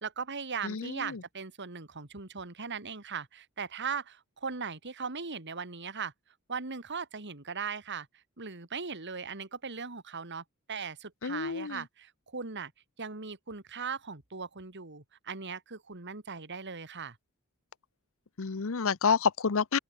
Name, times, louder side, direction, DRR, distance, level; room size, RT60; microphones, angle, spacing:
voice 1, 0.0-6.1 6.5-12.7 13.0-17.2, right 5 dB, 55° right, 2.3 m, -39 dB
voice 2, 0.6-1.2 11.2-11.8 18.4-19.8, left 5 dB, 65° left, 0.7 m, -29 dB
open air
head